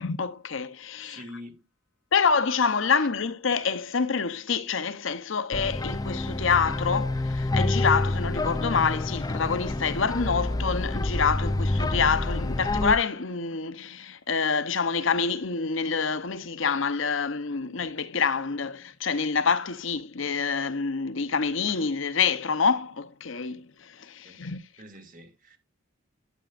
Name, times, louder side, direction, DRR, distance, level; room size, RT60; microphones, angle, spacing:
voice 1, 0.0-1.2 2.1-24.6, left 5 dB, 65° left, 0.9 m, -27 dB
voice 2, 1.0-1.6 3.0-3.1 24.2-24.4 24.8-25.6, equal, 40° right, 2.6 m, -45 dB
sound 1, 5.5-12.9, left 2 dB, 20° left, 0.5 m, -28 dB
12.0 x 8.6 x 2.5 m
head